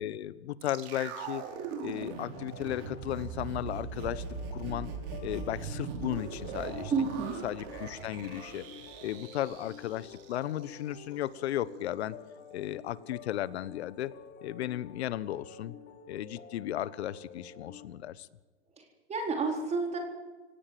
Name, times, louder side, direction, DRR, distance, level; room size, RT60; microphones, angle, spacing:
voice 1, 0.0-1.4 1.8-4.2 4.5-4.9 5.2-6.9 7.4-8.7 9.0-12.2 12.5-14.1 14.4-15.7 16.1-18.3, left 12 dB, 65° left, 17 dB, 1.3 m, -35 dB
sound 1, 0.6-10.7 11.0-11.1, right 6 dB, 40° right, 5.0 m, -40 dB
sound 2, 2.1-17.9, left 7 dB, 30° left, 3.6 m, -50 dB
voice 2, 6.9-7.4 18.8-18.9 19.1-20.0, right 4 dB, 20° right, 2 dB, 4.2 m, -30 dB
28.5 x 17.5 x 7.8 m, 1.3 s
hypercardioid pair, 120°, 35 cm